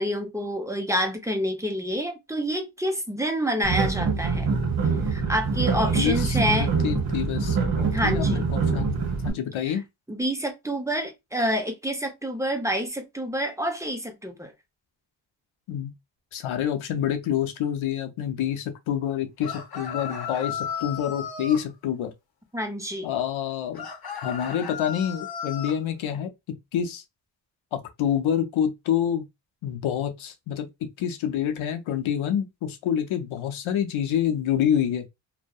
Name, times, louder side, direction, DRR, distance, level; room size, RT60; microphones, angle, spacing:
voice 1, 0.0-4.5 5.1-6.7 7.9-8.4 9.6-9.8 10.1-14.5 22.5-23.1, equal, 5° right, 0.5 m, -28 dB
sound 1, 3.6-9.3, right 5 dB, 50° right, 0.9 m, -25 dB
voice 2, 5.9-9.0 9.2-9.8 15.7-15.9 16.3-22.1 23.0-23.9 24.2-26.3 26.7-27.0 27.7-29.2 29.6-30.7 31.0-35.0, left 9 dB, 85° left, 0.6 m, -27 dB
sound 2, 19.4-21.6 23.7-25.8, left 7 dB, 50° left, 0.8 m, -34 dB
2.6 x 2.1 x 2.2 m
cardioid pair, 90°, 47 cm